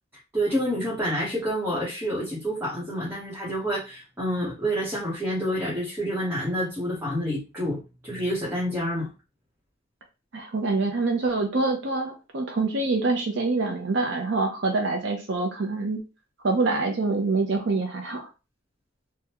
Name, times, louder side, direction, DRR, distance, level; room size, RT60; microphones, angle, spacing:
voice 1, 0.3-9.1, equal, 10° right, -8 dB, 1.0 m, -28 dB
voice 2, 10.3-16.0 16.4-18.3, right 3 dB, 65° right, 2 dB, 0.6 m, -25 dB
3.5 x 2.2 x 2.9 m, 0.29 s
head